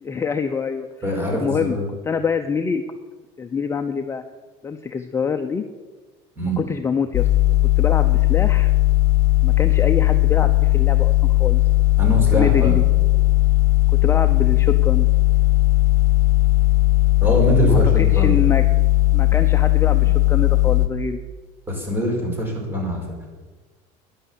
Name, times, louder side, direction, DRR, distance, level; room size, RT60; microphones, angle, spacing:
voice 1, 0.0-1.8 2.0-2.8 3.4-4.2 4.6-5.6 6.4-7.3 7.8-8.7 9.4-11.1 11.4-11.6 12.3-12.8 13.9-15.1 17.6-18.6 19.1-21.2, left 6 dB, 20° left, 6 dB, 0.7 m, -25 dB
voice 2, 1.0-1.8 6.4-6.6 12.0-12.8 17.2-18.3 21.7-23.0, right 1 dB, 15° right, 0 dB, 5.2 m, -23 dB
sound 1, 7.1-20.9, left 21 dB, 55° left, 1.5 m, -17 dB
12.0 x 10.5 x 8.4 m, 1.3 s
cardioid pair, 135°, 14 cm